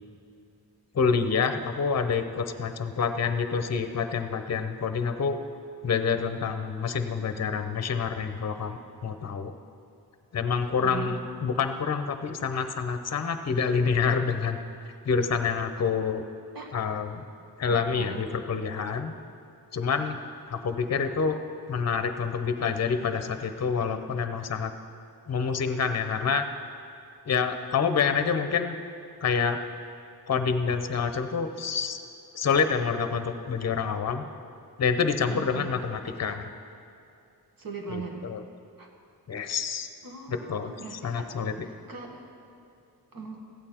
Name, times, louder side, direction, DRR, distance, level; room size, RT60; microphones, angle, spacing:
voice 1, 0.9-5.4 5.8-9.5 10.3-14.6 15.0-16.2 16.7-17.2 17.6-19.1 19.7-20.2 20.5-21.4 21.7-24.7 25.3-26.5 27.3-28.8 29.2-29.6 30.3-32.0 32.3-34.3 34.8-36.5 37.9-38.4 39.3-39.9 40.3-41.5, left 5 dB, 40° left, 8 dB, 0.7 m, -27 dB
voice 2, 10.8-11.6 15.8-15.9 16.5-16.7 17.7-18.3 35.3-35.7 37.6-38.2 38.8-38.9 40.0-41.3 41.6-42.3 43.1-43.4, right 4 dB, 60° right, 1 dB, 1.7 m, -40 dB
15.0 x 8.9 x 4.4 m, 2.5 s
wide cardioid pair, 125°, 39 cm